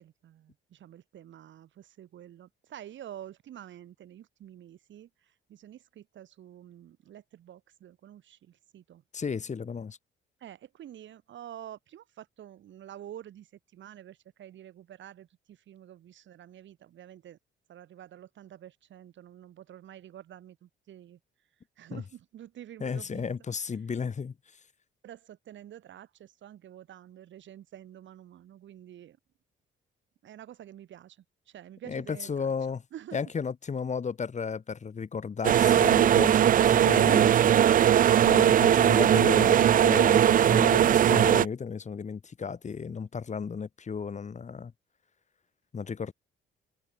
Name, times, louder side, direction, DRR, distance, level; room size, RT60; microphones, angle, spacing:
voice 1, 0.0-9.0 10.4-17.4 17.7-21.2 21.8-23.3 25.0-29.2 30.2-32.5 32.9-33.2, right 11 dB, 70° right, 2.8 m, -48 dB
voice 2, 9.1-10.0 21.9-22.0 22.8-24.3 31.9-32.8 33.1-37.6 38.2-44.7 45.7-46.1, left 6 dB, 35° left, 1.7 m, -34 dB
sound 1, 35.4-41.5, right 10 dB, 45° right, 0.4 m, -20 dB
cardioid pair, 90°, 20 cm